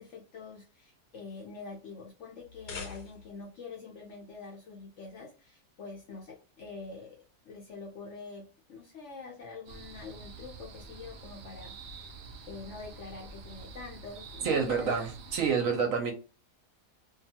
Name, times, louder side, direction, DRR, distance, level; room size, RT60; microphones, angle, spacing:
voice 1, 0.0-7.2 7.4-12.2 12.5-14.9, left 4 dB, 65° left, 0.8 m, -45 dB
sound 1, 2.4-3.5, left 5 dB, 90° left, 1.3 m, -43 dB
sound 2, 9.7-15.5, right 4 dB, 85° right, 0.5 m, -47 dB
voice 2, 14.4-16.1, right 5 dB, 70° right, 0.9 m, -28 dB
2.6 x 2.3 x 2.7 m
omnidirectional pair, 1.7 m